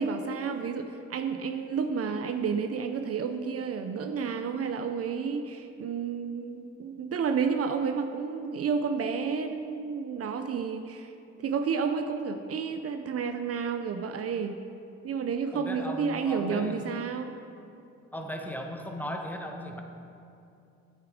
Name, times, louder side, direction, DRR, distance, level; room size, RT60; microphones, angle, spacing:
voice 1, 0.0-11.1 11.4-14.6 15.0-17.4, right 6 dB, 50° right, 7 dB, 0.5 m, -31 dB
voice 2, 15.5-16.8 18.1-19.8, equal, 5° left, 2 dB, 0.9 m, -37 dB
8.0 x 7.3 x 4.9 m, 2.7 s
cardioid pair, 90°, 30 cm